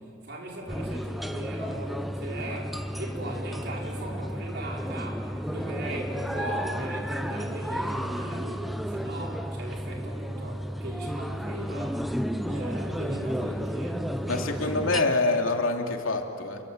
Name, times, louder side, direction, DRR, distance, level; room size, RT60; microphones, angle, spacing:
voice 1, 0.0-12.1 12.5-15.2, right 1 dB, 55° right, -1 dB, 5.7 m, -39 dB
sound 1, 0.7-15.0, equal, ahead, 0.9 m, -32 dB
voice 2, 14.3-16.6, left 3 dB, 85° left, 2 dB, 3.0 m, -26 dB
29.0 x 24.0 x 8.2 m, 2.8 s
head